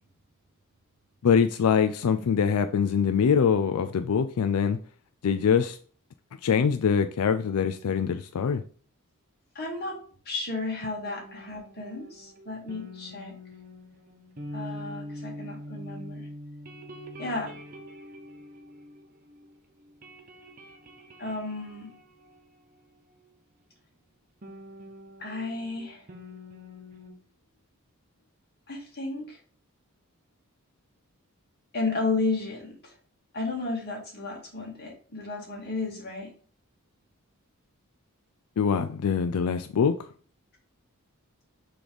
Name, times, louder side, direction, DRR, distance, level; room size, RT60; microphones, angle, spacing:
voice 1, 1.2-4.8 5.2-5.8 6.4-8.6 38.6-40.0, left 6 dB, 90° left, 0.4 m, -23 dB
voice 2, 9.6-13.3 14.5-16.3 17.2-17.5 21.2-21.9 25.2-26.0 28.7-29.4 31.7-32.9 33.3-36.3, left 3 dB, 45° left, 2.0 m, -33 dB
sound 1, 11.0-19.5 19.8-23.2 24.4-27.1, equal, 40° right, 0.9 m, -44 dB
6.1 x 3.3 x 5.1 m
head